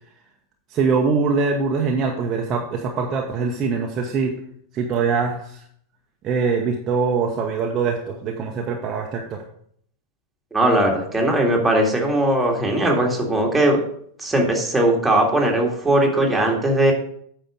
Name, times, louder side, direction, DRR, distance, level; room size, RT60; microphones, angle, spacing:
voice 1, 0.7-4.3 4.7-5.6 6.2-9.4, right 5 dB, 30° right, 1 dB, 1.0 m, -23 dB
voice 2, 10.5-13.8 14.2-16.9, right 1 dB, 5° right, 0 dB, 2.0 m, -19 dB
8.9 x 5.8 x 5.0 m, 0.65 s
figure-of-eight pair, 90°, 0 cm